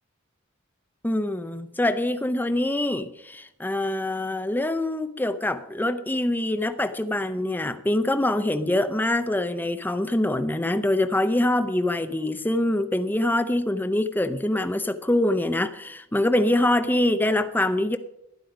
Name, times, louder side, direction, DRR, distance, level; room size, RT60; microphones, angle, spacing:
voice 1, 1.0-18.0, left 1 dB, 10° left, 0.6 m, -24 dB
12.0 x 9.9 x 5.0 m
head